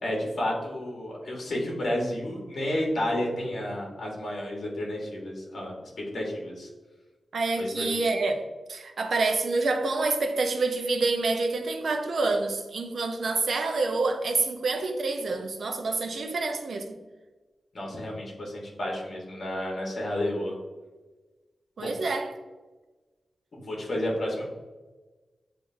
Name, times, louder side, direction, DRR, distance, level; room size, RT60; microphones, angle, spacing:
voice 1, 0.0-5.7 6.1-6.7 7.6-7.9 17.7-20.5 21.8-21.9 23.5-24.5, left 1 dB, 55° left, 1.2 m, -31 dB
voice 2, 7.3-8.4 8.7-17.0 21.8-22.3, right 3 dB, 60° right, 0.5 m, -27 dB
7.6 x 2.6 x 2.6 m
wide cardioid pair, 160°, 0 cm